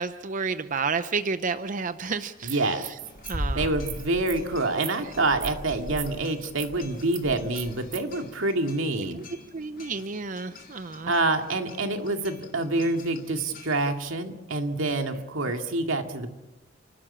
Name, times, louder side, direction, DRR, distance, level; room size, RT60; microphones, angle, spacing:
voice 1, 0.0-3.0 3.3-3.8 5.0-5.2 9.1-9.2 9.5-11.1 14.9-15.0, right 4 dB, 40° right, 11 dB, 0.6 m, -31 dB
sound 1, 2.4-8.0, right 12 dB, 70° right, 2.9 m, -41 dB
voice 2, 2.5-2.9 3.5-9.2 11.1-16.3, right 2 dB, 90° right, 4 dB, 2.3 m, -27 dB
sound 2, 3.0-13.9, left 1 dB, 50° left, 4.4 m, -41 dB
29.5 x 12.5 x 8.7 m, 1.1 s
head